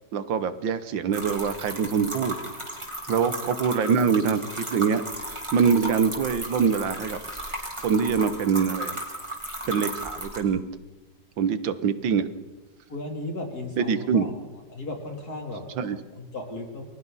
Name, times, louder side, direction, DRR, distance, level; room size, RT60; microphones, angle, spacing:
voice 1, 0.1-2.4 3.1-7.2 7.4-9.0 9.7-10.6 11.4-12.2 13.8-14.3 15.8-16.0, right 6 dB, 85° right, 12 dB, 1.8 m, -24 dB
sound 1, 1.1-10.4, right 1 dB, 15° right, 3.5 m, -35 dB
voice 2, 12.9-14.3 14.7-15.6 16.1-16.9, left 2 dB, 55° left, 1 dB, 4.0 m, -35 dB
29.0 x 22.0 x 4.1 m, 1.1 s
omnidirectional pair, 2.0 m